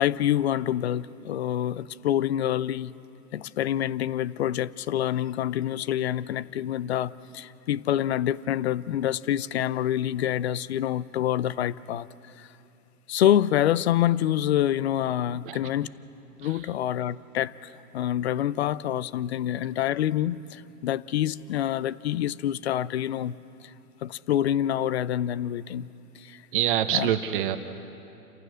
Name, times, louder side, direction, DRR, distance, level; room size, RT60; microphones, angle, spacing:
voice 1, 0.0-2.9 3.3-12.1 12.4-12.5 13.1-15.9 16.4-23.3 24.0-25.9 26.2-26.4 26.9-27.1, left 11 dB, 45° left, 19 dB, 0.5 m, -26 dB
voice 2, 26.5-27.6, right 11 dB, 35° right, 9 dB, 0.9 m, -26 dB
29.5 x 14.5 x 6.3 m, 2.8 s
hypercardioid pair, 130°, 45 cm